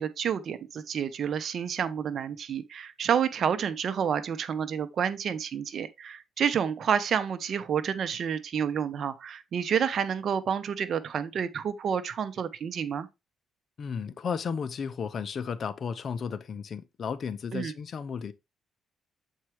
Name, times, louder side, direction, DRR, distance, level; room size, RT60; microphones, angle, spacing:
voice 1, 0.0-13.1 17.5-17.7, right 7 dB, 60° right, 0.8 m, -29 dB
voice 2, 13.8-18.3, left 6 dB, 55° left, 0.7 m, -34 dB
7.2 x 4.6 x 3.2 m
cardioid pair, 90°, 0 cm